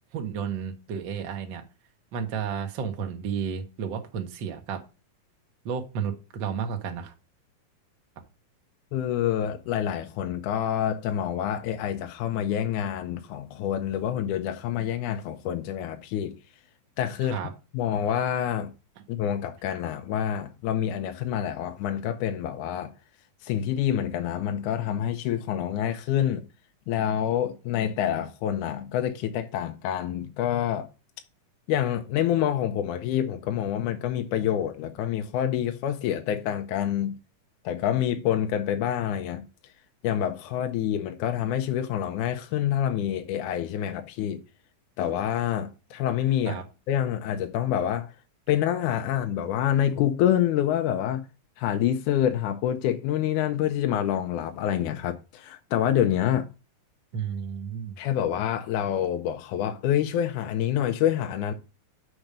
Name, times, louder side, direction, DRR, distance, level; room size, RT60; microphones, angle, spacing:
voice 1, 0.1-1.6 2.1-4.8 5.6-7.1 17.2-17.5 46.5-46.6 57.1-58.0, right 7 dB, 85° right, 1.0 m, -32 dB
voice 2, 8.9-16.4 17.0-17.4 17.7-18.7 19.1-22.9 23.4-26.4 26.9-30.9 31.7-37.2 37.6-39.5 40.0-44.4 45.0-48.1 48.5-51.3 51.6-56.5 58.0-61.5, left 10 dB, 75° left, 1.9 m, -27 dB
6.0 x 5.0 x 6.5 m
omnidirectional pair, 4.1 m